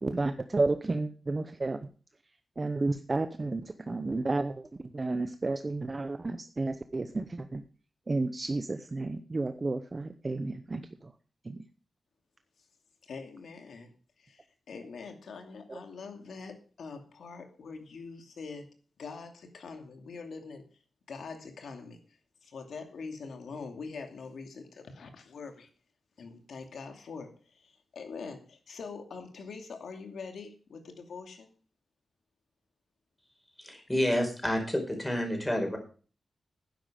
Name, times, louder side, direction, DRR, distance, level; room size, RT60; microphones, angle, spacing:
voice 1, 0.0-1.8 2.6-4.7 4.9-7.6 8.1-10.9 11.5-11.6 15.7-15.8, right 3 dB, 30° right, 9 dB, 0.8 m, -31 dB
voice 2, 13.0-13.9 14.2-18.7 19.0-20.6 21.1-25.7 26.2-31.5, left 4 dB, 90° left, 5 dB, 2.6 m, -44 dB
voice 3, 33.6-35.8, left 1 dB, 10° left, 3 dB, 4.8 m, -29 dB
11.5 x 10.5 x 5.1 m, 0.38 s
wide cardioid pair, 120°, 0 cm